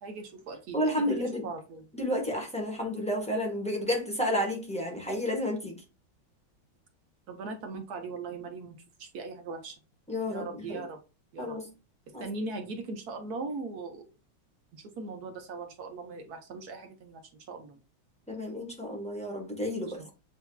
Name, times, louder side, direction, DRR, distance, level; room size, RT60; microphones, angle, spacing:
voice 1, 0.0-0.8 1.1-1.9 7.3-9.8 10.3-11.0 11.3-11.6 12.1-14.0 14.7-17.2 17.5-17.8 19.9-20.1, right 3 dB, 60° right, 1.1 m, -39 dB
voice 2, 0.7-1.4 1.9-5.8 10.1-10.8 11.4-11.7 12.1-12.2 18.3-20.0, left 1 dB, 5° left, 0.5 m, -31 dB
8.0 x 2.7 x 2.2 m
omnidirectional pair, 2.2 m